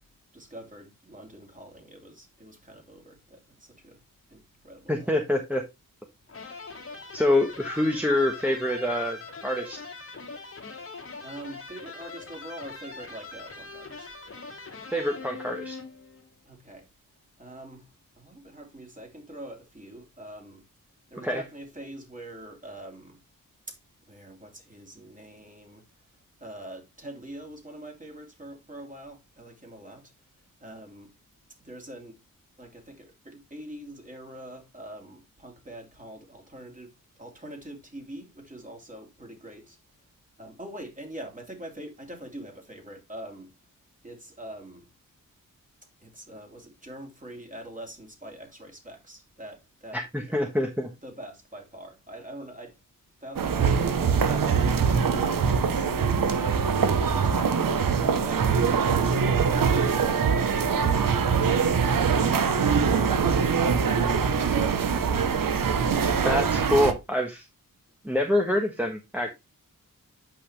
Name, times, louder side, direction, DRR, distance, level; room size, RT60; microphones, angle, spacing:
voice 1, 0.3-4.0 4.3-5.1 11.2-14.1 16.4-16.9 17.4-17.9 18.2-20.6 21.1-23.2 23.7-23.8 24.1-25.8 26.4-30.1 30.6-31.1 31.6-32.1 32.6-36.9 37.2-39.8 40.4-43.5 44.0-44.9 46.0-50.0 50.3-50.4 51.0-52.8 53.2-55.9 57.1-57.3, right 1 dB, 20° right, 3.0 m, -44 dB
voice 2, 4.9-5.6 7.1-9.8 14.9-15.8 21.2-21.4 49.9-50.9 66.2-67.4 68.0-69.3, left 1 dB, 5° right, 1.3 m, -26 dB
sound 1, 6.3-16.3, left 4 dB, 40° left, 2.3 m, -42 dB
sound 2, 53.4-66.9, right 6 dB, 70° right, 0.9 m, -23 dB
8.6 x 5.6 x 3.2 m
wide cardioid pair, 80°, 34 cm